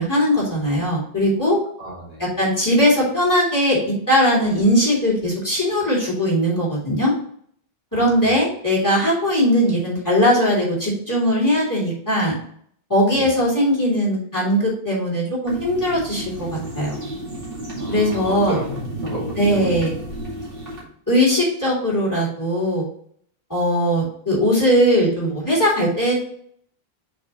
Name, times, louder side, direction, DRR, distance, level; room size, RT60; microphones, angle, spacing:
voice 1, 0.0-1.6 2.2-7.1 7.9-12.4 12.9-17.0 17.9-18.6 19.4-19.9 21.1-22.9 23.5-26.2, equal, 20° left, -6 dB, 2.9 m, -19 dB
voice 2, 1.8-2.2 7.9-8.1 13.1-13.3 17.8-19.8, right 1 dB, 40° right, -7 dB, 2.7 m, -33 dB
sound 1, 15.5-20.8, right 1 dB, 60° right, 2.5 m, -31 dB
6.0 x 4.8 x 4.2 m, 0.63 s
omnidirectional pair, 1.0 m